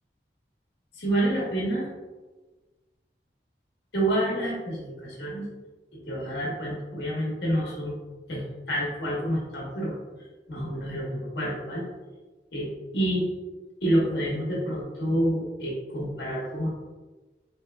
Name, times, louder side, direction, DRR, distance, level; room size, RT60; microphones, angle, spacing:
voice 1, 0.9-1.9 3.9-5.4 5.9-7.9 8.3-11.8 12.5-13.3 13.8-16.7, right 1 dB, 70° left, -4 dB, 1.1 m, -28 dB
4.5 x 3.0 x 2.3 m, 1.2 s
head